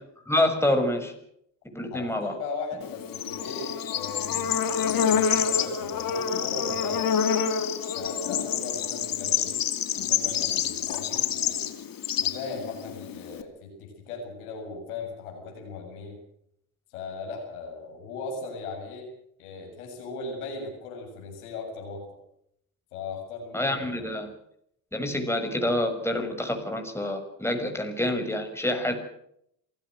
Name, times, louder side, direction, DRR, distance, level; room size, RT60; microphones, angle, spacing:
voice 1, 0.3-1.1 1.7-2.3 23.5-24.3 24.9-29.0, left 1 dB, 5° left, 5 dB, 6.4 m, -27 dB
voice 2, 1.9-7.0 7.9-9.6 10.0-11.7 12.2-16.2 16.9-19.1 19.4-22.0 22.9-24.1, left 4 dB, 85° left, 1 dB, 7.7 m, -38 dB
Bird / Insect, 2.8-13.4, left 7 dB, 50° left, 2.6 m, -27 dB
28.0 x 16.5 x 6.5 m, 0.73 s
hypercardioid pair, 60°, 42 cm